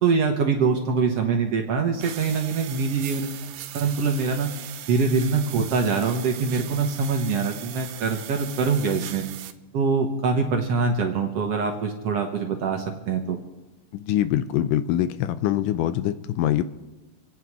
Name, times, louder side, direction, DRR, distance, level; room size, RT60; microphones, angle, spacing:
voice 1, 0.0-3.5 3.7-4.5 4.9-9.2 9.7-13.4, right 5 dB, 60° right, 3 dB, 1.8 m, -24 dB
sound 1, 2.0-9.5, right 12 dB, 85° right, 2.5 m, -39 dB
voice 2, 13.9-16.6, left 12 dB, 80° left, 12 dB, 2.1 m, -24 dB
27.5 x 9.2 x 4.8 m, 1.1 s
omnidirectional pair, 3.9 m